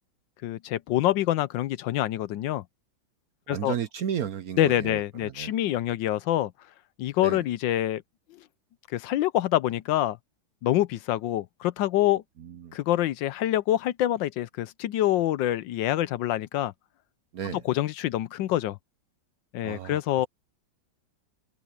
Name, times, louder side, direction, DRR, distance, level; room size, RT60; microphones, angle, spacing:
voice 1, 0.4-2.6 3.5-3.8 4.6-6.5 7.0-8.0 8.3-8.4 8.9-10.2 10.6-12.2 12.7-16.7 17.5-18.8 19.5-20.3, left 13 dB, 75° left, 1.3 m, -26 dB
voice 2, 3.5-5.5 7.2-7.4 12.4-12.8 17.3-17.6 19.6-20.2, right 9 dB, 60° right, 1.0 m, -34 dB
omnidirectional pair, 2.2 m